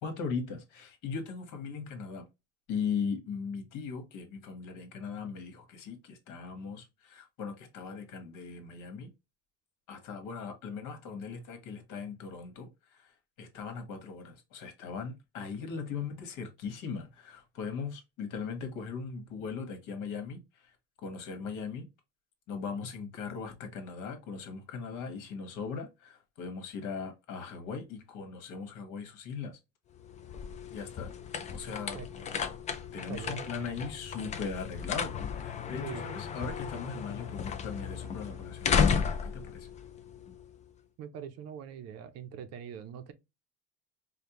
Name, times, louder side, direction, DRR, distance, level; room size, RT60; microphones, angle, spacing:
voice 1, 0.0-2.2 2.7-9.1 9.9-20.7 21.0-21.9 22.5-29.6 30.7-31.1 31.5-32.0 32.9-39.7, left 5 dB, 70° left, 1.3 m, -39 dB
sound 1, 29.9-40.7, left 6 dB, 20° left, 0.3 m, -34 dB
voice 2, 33.1-33.8 35.8-36.1 41.0-43.1, right 8 dB, 50° right, 0.5 m, -42 dB
5.1 x 2.2 x 2.8 m
cardioid pair, 155°, 33 cm